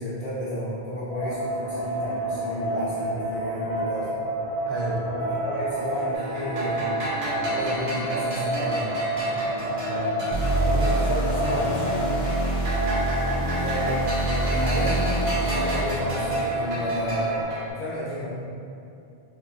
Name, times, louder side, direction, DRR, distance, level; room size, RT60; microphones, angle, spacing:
voice 1, 0.0-4.2 5.2-7.1 7.5-8.9 9.2-9.4 13.5-13.9 14.4-17.4 17.7-18.3, equal, 65° left, -15 dB, 1.2 m, -32 dB
sound 1, 1.1-17.4, right 1 dB, 5° left, 1.0 m, -29 dB
voice 2, 4.7-5.0 9.8-10.1 10.7-12.0, right 1 dB, 70° right, -4 dB, 0.8 m, -31 dB
sound 2, 6.1-11.2 11.4-17.7, right 1 dB, 50° right, 1.2 m, -34 dB
sound 3, 10.3-16.1, right 1 dB, 80° left, 1.4 m, -26 dB
4.5 x 2.9 x 2.4 m, 2.6 s
omnidirectional pair, 1.1 m